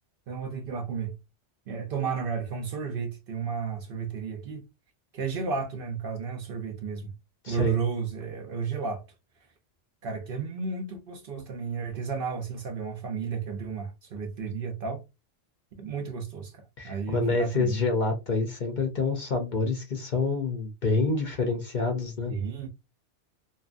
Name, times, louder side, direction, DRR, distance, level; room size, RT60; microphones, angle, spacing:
voice 1, 0.3-1.2 1.7-4.6 5.1-7.1 7.5-9.0 10.0-15.0 15.8-17.7 22.3-22.7, right 5 dB, 60° right, 0.6 m, -32 dB
voice 2, 7.4-7.8 16.8-22.3, left 3 dB, 50° left, 0.6 m, -27 dB
2.7 x 2.3 x 2.4 m
omnidirectional pair, 1.2 m